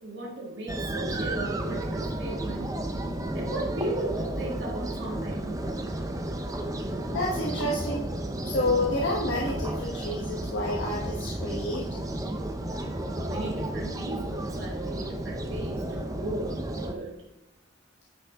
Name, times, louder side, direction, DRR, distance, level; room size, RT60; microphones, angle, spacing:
voice 1, 0.0-2.7 3.3-5.7 13.1-17.2, right 1 dB, 60° right, -3 dB, 1.9 m, -36 dB
sound 1, 0.7-16.9, right 1 dB, 15° right, 0.7 m, -32 dB
voice 2, 7.1-8.1 8.4-11.8, left 1 dB, 65° left, -3 dB, 1.3 m, -29 dB
sound 2, 7.4-8.6 9.2-10.4 11.0-12.2 12.8-14.0, left 1 dB, 15° left, 2.4 m, -42 dB
9.7 x 8.2 x 3.6 m, 0.86 s
head